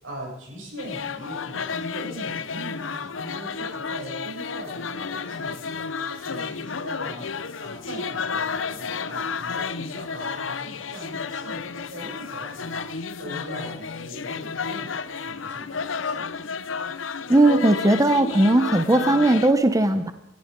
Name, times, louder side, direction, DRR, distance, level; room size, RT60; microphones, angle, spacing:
voice 1, 0.0-7.3 7.6-12.9 13.2-16.3, right 1 dB, 80° right, -1 dB, 7.3 m, -40 dB
sound 1, 0.8-19.5, left 5 dB, 75° left, 0.8 m, -31 dB
voice 2, 17.3-20.1, right 1 dB, 20° right, 9 dB, 0.8 m, -18 dB
19.5 x 14.0 x 5.2 m, 0.86 s
head